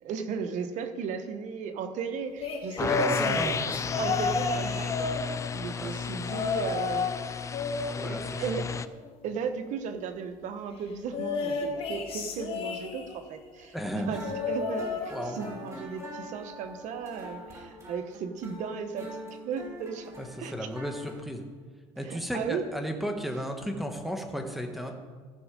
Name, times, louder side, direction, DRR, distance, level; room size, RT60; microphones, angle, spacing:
voice 1, 0.0-3.7 4.0-7.5 8.0-8.6 9.2-14.2 14.5-19.1 19.4-20.1 20.4-20.7 22.0-22.6, right 6 dB, 65° right, 8 dB, 1.1 m, -36 dB
sound 1, 2.4-5.7 6.2-7.2 7.5-9.1 11.1-13.3 14.2-15.7 16.0-16.4 17.5-17.6, left 4 dB, 45° left, 1.9 m, -32 dB
sound 2, 2.8-8.9, left 6 dB, 20° left, 0.4 m, -33 dB
voice 2, 2.8-3.6 3.9-4.0 5.8-5.9 7.9-8.7 13.7-14.2 15.1-15.4 20.2-20.3 20.5-21.4 22.0-25.0, equal, ahead, 4 dB, 1.3 m, -34 dB
sound 3, 13.8-21.1, right 1 dB, 20° right, 3.1 m, -44 dB
14.5 x 6.2 x 5.2 m, 1.5 s
cardioid pair, 105°, 14 cm